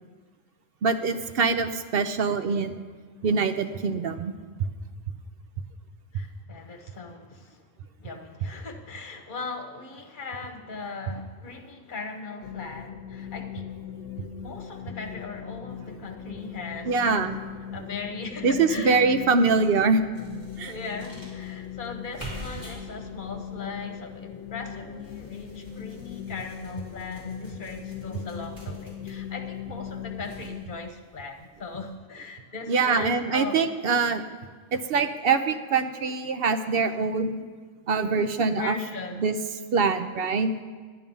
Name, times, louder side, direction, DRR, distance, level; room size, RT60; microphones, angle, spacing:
voice 1, 0.8-2.8 3.2-4.3 16.9-17.4 18.4-20.0 20.6-20.7 32.7-34.2 34.7-37.4 37.9-38.7 39.2-39.3 39.7-40.5, right 4 dB, 65° right, 9 dB, 0.8 m, -24 dB
voice 2, 6.1-7.6 8.0-13.7 14.4-17.1 17.7-19.0 20.6-33.6 38.6-39.3, left 3 dB, 50° left, 4 dB, 1.2 m, -38 dB
sound 1, 12.4-30.6, left 9 dB, 85° left, 1.0 m, -39 dB
sound 2, 20.1-31.9, left 1 dB, 25° right, 4.1 m, -48 dB
10.5 x 10.5 x 5.4 m, 1.5 s
omnidirectional pair, 1.1 m